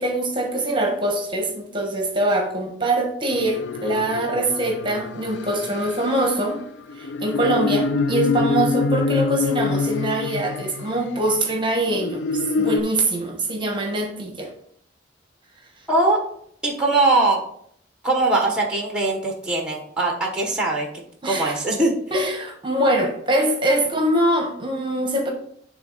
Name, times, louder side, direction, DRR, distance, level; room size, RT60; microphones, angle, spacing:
voice 1, 0.0-6.6 7.0-12.2 12.6-14.5 21.2-21.6 22.1-25.3, right 1 dB, 25° right, 1 dB, 1.2 m, -23 dB
sound 1, 3.3-11.2 11.8-12.8, left 4 dB, 65° left, 0.4 m, -26 dB
voice 2, 15.9-16.2 16.6-17.4 18.0-20.9 21.2-21.9, right 2 dB, 5° right, 0 dB, 1.2 m, -21 dB
9.7 x 3.7 x 4.0 m, 0.66 s
head